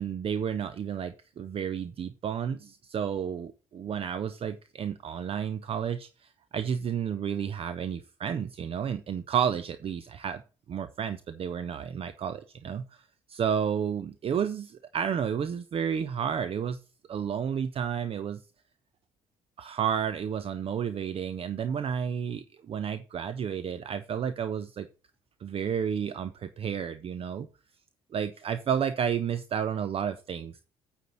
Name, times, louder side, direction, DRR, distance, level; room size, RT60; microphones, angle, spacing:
voice 1, 0.0-10.4 10.7-13.0 13.3-16.8 17.1-18.4 19.6-24.9 25.4-27.5 28.1-30.6, right 8 dB, 40° right, 12 dB, 0.7 m, -31 dB
9.3 x 4.3 x 5.7 m, 0.33 s
figure-of-eight pair, 50°, 16 cm